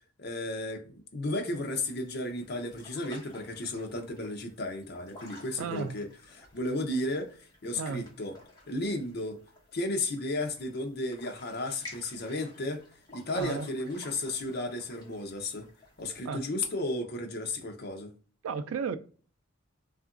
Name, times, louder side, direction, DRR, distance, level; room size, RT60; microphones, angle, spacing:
voice 1, 0.2-6.1 6.3-8.3 8.7-9.4 9.7-12.8 13.1-15.7 16.0-18.1, left 2 dB, 50° left, 0.5 m, -34 dB
sound 1, 1.5-16.2, left 2 dB, 20° left, 1.0 m, -53 dB
voice 2, 5.6-6.0 7.7-8.1 13.3-13.7 16.2-16.4 18.4-19.0, right 5 dB, 80° right, 0.3 m, -34 dB
2.8 x 2.4 x 2.4 m
head